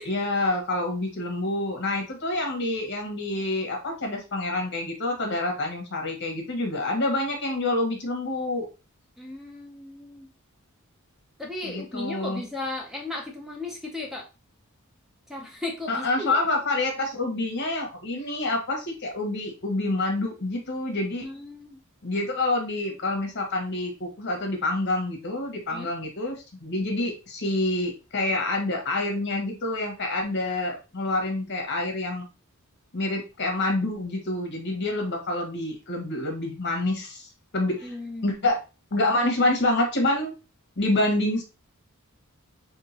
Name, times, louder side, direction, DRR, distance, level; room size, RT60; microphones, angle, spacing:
voice 1, 0.0-8.7 11.6-12.4 15.9-21.2 22.0-32.3 32.9-37.3 37.5-37.9 38.2-38.6 38.9-40.3 40.8-41.4, left 2 dB, 55° left, 2 dB, 1.4 m, -27 dB
voice 2, 9.2-10.3 11.4-14.3 15.3-16.4 21.2-21.8 25.7-25.9 37.8-38.3 39.2-39.3, left 2 dB, ahead, 0 dB, 0.6 m, -36 dB
3.8 x 3.7 x 2.8 m, 0.30 s
head